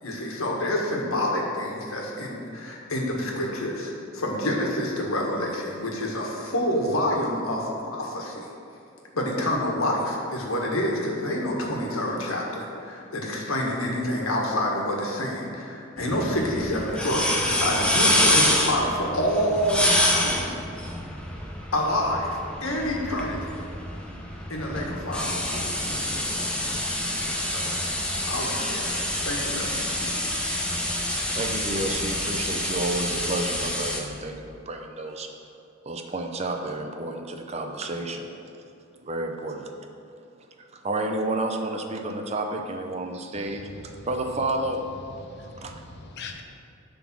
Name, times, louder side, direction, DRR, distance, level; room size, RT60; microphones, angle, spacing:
voice 1, 0.0-8.5 9.1-20.6 21.7-23.5 24.5-26.5 27.0-27.7 28.3-30.4, left 1 dB, 85° left, -1 dB, 1.5 m, -28 dB
sound 1, 16.0-34.0, left 1 dB, 5° left, 0.7 m, -27 dB
voice 2, 31.2-35.3 35.9-38.3 39.0-39.7 40.6-44.9 45.6-45.7, right 2 dB, 30° right, 3 dB, 0.6 m, -31 dB
voice 3, 43.3-44.1 45.2-46.4, left 3 dB, 55° left, 3 dB, 0.7 m, -42 dB
11.0 x 3.8 x 6.1 m, 2.6 s
head